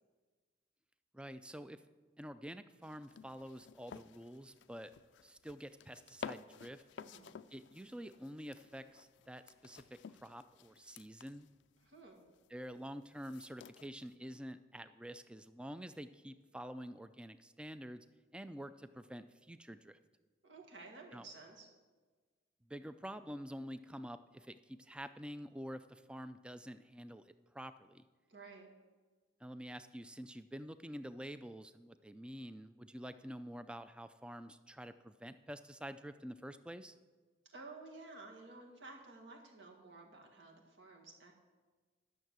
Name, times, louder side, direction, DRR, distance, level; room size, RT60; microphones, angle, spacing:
voice 1, 1.1-1.8 2.2-4.9 5.2-6.8 7.5-11.5 12.5-18.1 18.3-20.0 21.1-21.2 22.7-28.0 29.4-37.0, equal, 5° right, 11 dB, 0.3 m, -48 dB
sound 1, 2.8-14.1, left 7 dB, 70° left, 0.3 m, -53 dB
voice 2, 7.0-7.4 11.8-12.3 20.4-21.7 28.3-28.7 37.5-41.3, right 3 dB, 75° right, 0 dB, 1.9 m, -53 dB
12.0 x 6.6 x 6.2 m, 1.4 s
head